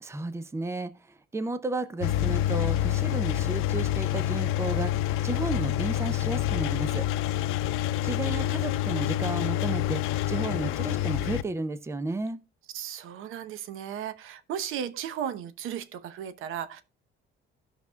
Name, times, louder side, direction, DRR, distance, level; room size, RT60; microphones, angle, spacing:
voice 1, 0.0-0.9 1.3-4.9 5.2-7.1 8.0-12.4, right 2 dB, 15° right, 0.7 m, -33 dB
Engine, 2.0-11.4, left 13 dB, 90° left, 0.6 m, -27 dB
voice 2, 7.2-7.9 12.7-16.8, right 9 dB, 80° right, 0.9 m, -36 dB
17.0 x 6.0 x 2.3 m
cardioid pair, 140°, 21 cm